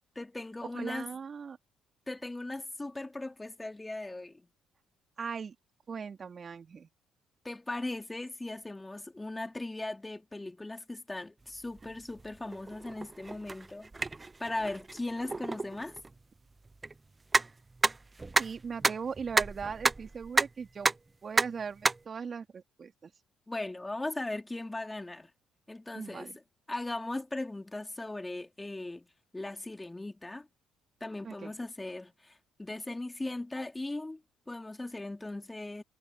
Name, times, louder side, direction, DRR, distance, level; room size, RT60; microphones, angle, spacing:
voice 1, 0.1-1.1 2.1-4.4 7.4-13.9 14.4-16.0 23.5-25.3 25.7-26.3 26.7-29.1 29.3-30.5 31.0-34.2 34.5-35.8, left 2 dB, 15° left, 3.3 m, -38 dB
voice 2, 0.7-1.6 5.2-5.6 5.9-6.9 18.4-20.9 21.2-23.1 25.9-26.4 31.2-31.5, right 6 dB, 40° right, 3.5 m, -39 dB
sound 1, 11.4-21.1 21.3-22.0, right 3 dB, 25° right, 1.2 m, -32 dB
figure-of-eight pair, 45°, 0 cm